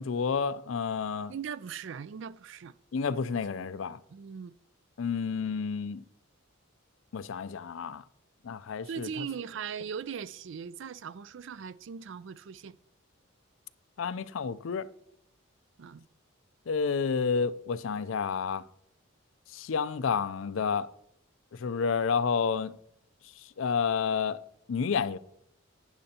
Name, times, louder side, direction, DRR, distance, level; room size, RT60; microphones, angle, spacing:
voice 1, 0.0-1.3 2.9-4.0 5.0-6.0 7.1-8.0 8.4-9.3 14.0-14.9 16.7-18.6 19.5-20.9 21.5-22.7 23.6-24.4 24.7-25.2, left 5 dB, 70° left, 0.4 m, -30 dB
voice 2, 1.3-2.8 3.1-3.2 4.1-4.5 8.9-12.8 15.8-16.1, right 7 dB, 60° right, 0.4 m, -39 dB
12.0 x 9.5 x 2.8 m
head